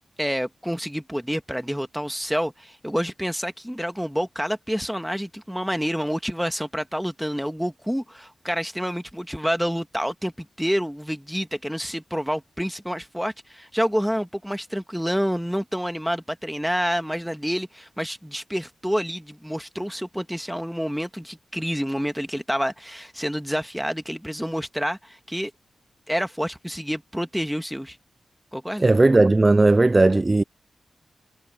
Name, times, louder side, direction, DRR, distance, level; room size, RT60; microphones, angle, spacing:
voice 1, 0.2-25.5 26.1-28.0 28.5-28.9, equal, ahead, 1.6 m, -28 dB
voice 2, 28.8-30.4, right 2 dB, 25° right, 0.4 m, -16 dB
wide cardioid pair, 100°, 0 cm